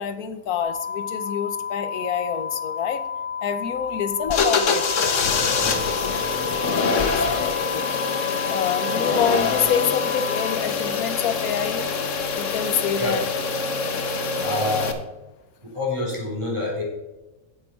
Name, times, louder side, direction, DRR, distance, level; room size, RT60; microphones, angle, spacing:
voice 1, 0.0-3.0 3.4-4.9 6.9-8.0 8.5-11.8 12.4-13.3 14.3-14.4, left 8 dB, 80° left, 11 dB, 1.3 m, -27 dB
sound 1, 0.6-10.6, left 7 dB, 30° left, 0.6 m, -31 dB
sound 2, 4.3-14.9, left 4 dB, 60° left, 1.3 m, -25 dB
voice 2, 5.6-5.9 13.0-13.2 14.4-15.0 15.6-16.8, left 2 dB, 20° right, -5 dB, 4.0 m, -27 dB
8.9 x 8.1 x 4.5 m, 1.1 s
omnidirectional pair, 1.5 m